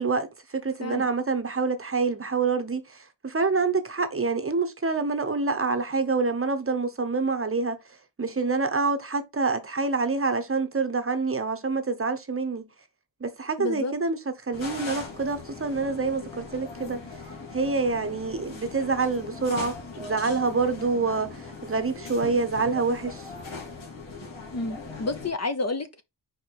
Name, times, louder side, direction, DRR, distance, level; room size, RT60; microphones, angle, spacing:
voice 1, 0.0-7.8 8.2-12.7 13.2-14.2 14.4-17.0 17.5-23.3, right 4 dB, 30° right, 0.9 m, -27 dB
voice 2, 13.6-13.9 24.5-26.0, left 3 dB, 35° left, 0.8 m, -30 dB
sound 1, 14.5-25.3, left 4 dB, 80° left, 2.5 m, -40 dB
4.7 x 4.7 x 4.5 m
wide cardioid pair, 115°, 46 cm